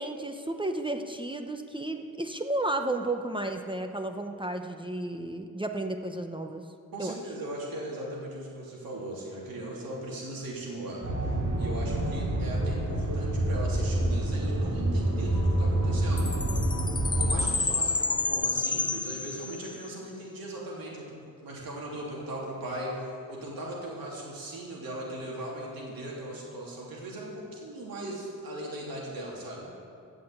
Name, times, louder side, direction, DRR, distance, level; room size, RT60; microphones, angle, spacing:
voice 1, 0.0-6.7 7.0-7.1, right 2 dB, 15° right, 5 dB, 0.9 m, -33 dB
voice 2, 6.9-16.5 17.2-29.7, right 1 dB, 80° right, -3 dB, 3.2 m, -38 dB
sound 1, 11.0-17.5, right 1 dB, 45° right, 2.8 m, -27 dB
Chime, 16.2-19.9, left 3 dB, 15° left, 0.3 m, -30 dB
16.0 x 6.2 x 8.1 m, 2.4 s
cardioid pair, 55°, 35 cm